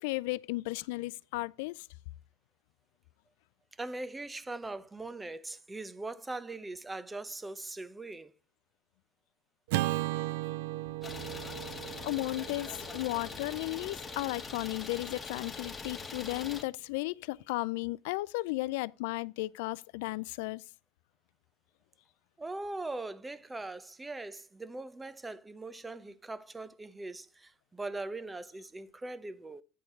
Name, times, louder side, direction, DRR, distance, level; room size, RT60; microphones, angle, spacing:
voice 1, 0.0-1.9 10.1-10.3 12.0-20.6, left 21 dB, 75° left, 0.4 m, -35 dB
voice 2, 3.8-8.3 22.4-29.6, right 2 dB, 15° right, 0.7 m, -41 dB
Acoustic guitar / Strum, 9.7-14.1, right 17 dB, 75° right, 0.4 m, -36 dB
Idling, 11.0-16.6, left 4 dB, 15° left, 1.5 m, -42 dB
9.2 x 4.4 x 5.5 m
supercardioid pair, 90°, 0 cm